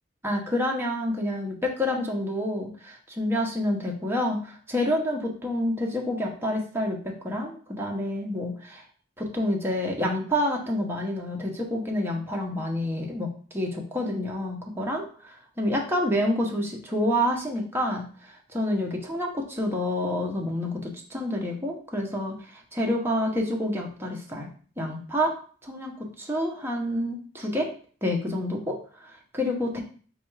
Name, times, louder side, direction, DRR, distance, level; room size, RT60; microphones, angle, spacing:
voice 1, 0.2-8.8 9.2-24.5 24.8-25.3 25.6-27.7 28.0-29.8, left 1 dB, 10° right, 0 dB, 0.8 m, -28 dB
4.2 x 2.4 x 4.6 m, 0.43 s
head